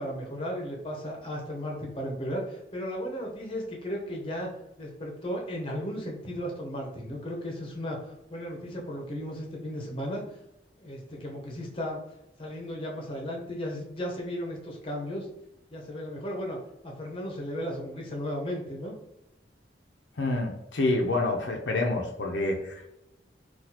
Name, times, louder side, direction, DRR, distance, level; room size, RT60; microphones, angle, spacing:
voice 1, 0.0-4.5 4.8-10.2 10.8-12.0 12.4-15.3 15.7-16.6 16.8-18.9, equal, 30° left, -1 dB, 0.7 m, -35 dB
voice 2, 20.2-22.9, left 2 dB, 80° left, 1 dB, 0.5 m, -28 dB
4.1 x 2.3 x 2.8 m, 0.86 s
head